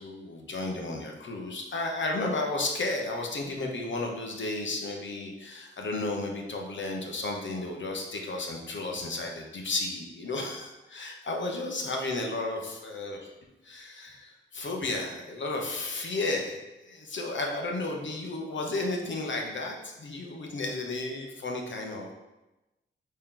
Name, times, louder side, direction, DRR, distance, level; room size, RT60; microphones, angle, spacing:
voice 1, 0.0-13.2 13.6-22.1, left 2 dB, 65° left, 1 dB, 1.0 m, -33 dB
8.7 x 3.2 x 3.8 m, 1.0 s
wide cardioid pair, 170°, 20 cm